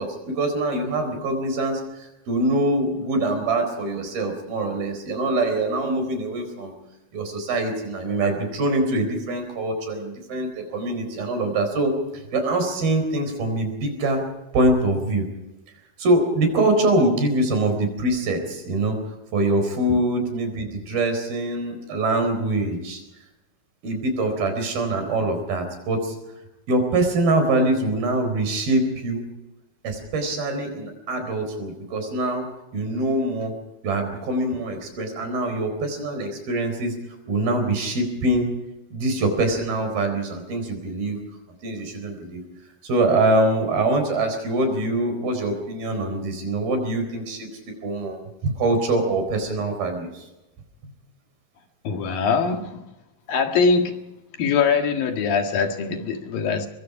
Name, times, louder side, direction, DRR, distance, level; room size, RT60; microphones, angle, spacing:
voice 1, 0.0-6.7 7.1-14.2 14.5-15.3 16.0-19.0 19.3-23.0 23.8-26.2 26.7-29.2 29.8-32.5 32.7-33.5 33.8-37.0 37.3-38.5 38.9-41.2 41.6-42.4 42.8-47.5 47.8-48.2 48.4-50.3 50.8-50.9, right 2 dB, 80° right, 6 dB, 6.1 m, -24 dB
voice 2, 51.9-52.8 53.3-54.0 54.4-56.7, left 5 dB, 70° left, 4 dB, 3.5 m, -22 dB
23.5 x 22.5 x 4.9 m, 0.97 s
omnidirectional pair, 4.2 m